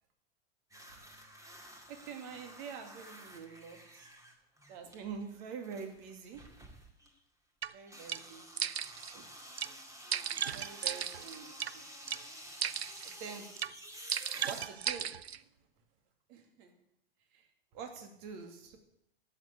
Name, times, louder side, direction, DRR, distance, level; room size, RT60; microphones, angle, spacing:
sound 1, 0.7-7.2 7.8-15.3, equal, 10° right, 2.3 m, -51 dB
voice 1, 1.9-4.1 4.7-6.5 7.7-8.7 9.1-9.3 10.0-11.8 13.0-13.5 14.5-15.1 15.3-15.4 16.3-16.7 17.3-17.5 17.7-18.8, right 6 dB, 45° right, 5 dB, 2.5 m, -46 dB
sound 2, 7.6-7.7 8.1-8.2 8.6-9.1 9.6-9.7 10.1-11.7 12.1-12.2 12.6-13.1 13.6-13.7 14.1-15.4, right 8 dB, 85° right, 0.5 m, -36 dB
12.0 x 8.8 x 8.3 m, 0.76 s
figure-of-eight pair, 95°, 31 cm